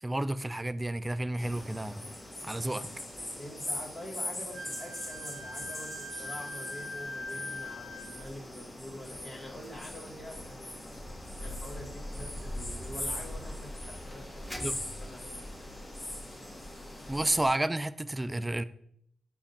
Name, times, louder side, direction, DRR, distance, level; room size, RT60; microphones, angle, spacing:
voice 1, 0.0-2.1 2.4-2.9 14.6-14.8 17.1-18.6, right 1 dB, 20° right, 14 dB, 0.3 m, -31 dB
sound 1, 1.4-17.5, left 1 dB, 35° left, 1.3 m, -41 dB
sound 2, 3.1-16.7, equal, 10° left, 0.8 m, -54 dB
voice 2, 3.4-10.8 11.4-15.4 15.8-15.9, left 1 dB, 55° left, -3 dB, 1.6 m, -46 dB
Wind instrument woodwind instrument, 4.5-8.3, left 1 dB, 65° right, 0.6 m, -42 dB
5.1 x 2.4 x 4.2 m, 0.67 s
supercardioid pair, 45°, 0 cm